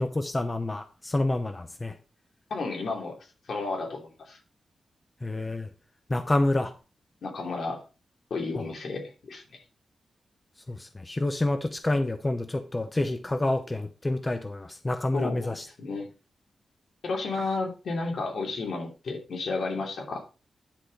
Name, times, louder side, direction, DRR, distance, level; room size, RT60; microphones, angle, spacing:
voice 1, 0.0-2.0 5.2-5.7 6.1-6.7 10.7-15.7, left 2 dB, 20° left, 8 dB, 0.7 m, -28 dB
voice 2, 2.5-3.2 3.5-4.4 7.2-7.8 8.3-9.6 15.1-15.5 15.8-16.1 17.0-20.2, left 3 dB, 70° left, 1 dB, 3.0 m, -32 dB
10.5 x 4.9 x 5.1 m, 0.33 s
wide cardioid pair, 155°, 0 cm